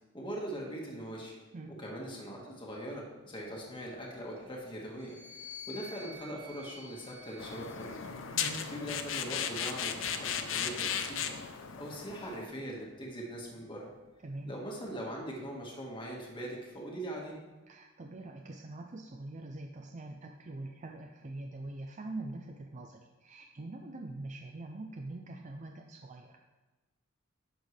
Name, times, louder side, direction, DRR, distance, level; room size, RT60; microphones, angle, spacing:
voice 1, 0.1-1.3 1.7-8.0 8.7-11.3 11.8-13.9 14.4-17.4, right 1 dB, 25° left, -3 dB, 1.7 m, -41 dB
sound 1, 4.9-8.5 9.3-10.9, left 3 dB, 15° right, 2.2 m, -51 dB
sound 2, 7.4-12.4, left 7 dB, 75° left, 0.6 m, -36 dB
voice 2, 8.3-8.7 14.2-14.5 17.7-26.4, right 2 dB, 35° right, 3 dB, 0.5 m, -44 dB
11.0 x 6.4 x 3.3 m, 1.2 s
head